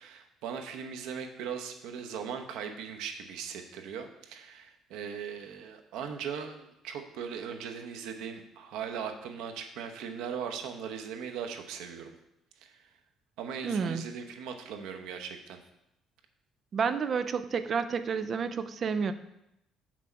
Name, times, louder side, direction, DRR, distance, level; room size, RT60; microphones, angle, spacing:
voice 1, 0.0-12.1 12.6-12.8 13.4-15.6, right 7 dB, 90° right, 5 dB, 0.9 m, -39 dB
voice 2, 13.6-14.0 16.7-19.1, right 6 dB, 35° right, 11 dB, 0.4 m, -30 dB
7.3 x 6.1 x 4.6 m, 0.85 s
cardioid pair, 160°, 0 cm